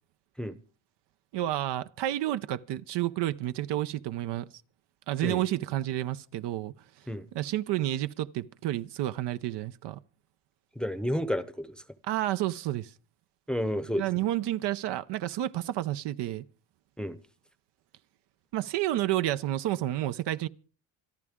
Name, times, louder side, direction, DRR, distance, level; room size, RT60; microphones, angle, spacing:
voice 1, 1.3-4.5 5.1-6.7 7.3-10.0 12.0-12.9 14.0-16.4 18.5-20.5, right 14 dB, 60° right, 0.7 m, -30 dB
voice 2, 10.8-11.8 13.5-14.0 17.0-17.2, equal, ahead, 0.8 m, -31 dB
26.5 x 11.0 x 3.6 m
cardioid pair, 120°, 47 cm